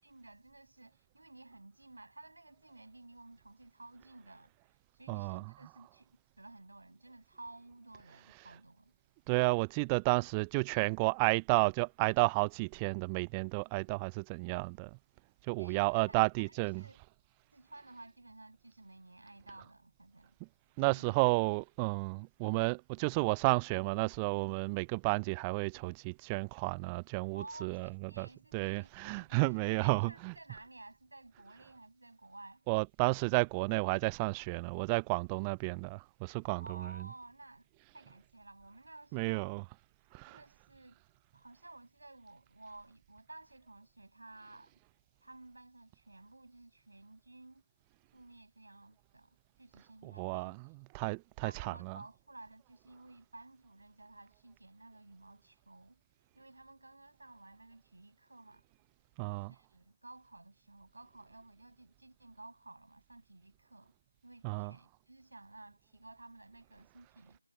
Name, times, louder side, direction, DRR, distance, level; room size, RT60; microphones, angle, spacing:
voice 1, 0.0-4.5 4.9-9.0 15.6-17.0 17.5-20.4 20.8-21.5 27.3-32.7 36.6-37.7 37.9-39.5 40.3-41.0 41.3-44.8 45.2-47.6 48.1-50.8 51.4-56.0 56.3-58.6 59.3-63.9 64.2-67.4, right 2 dB, 60° right, 7.3 m, -54 dB
voice 2, 5.1-5.4 9.3-14.9 15.5-16.8 20.8-27.9 28.2-28.3 28.5-30.3 32.7-36.9 39.1-39.6 40.1-40.4 50.0-50.6 50.9-51.7 59.2-59.5 64.4-64.7, right 31 dB, 10° right, 0.4 m, -32 dB
figure-of-eight pair, 160°, 0 cm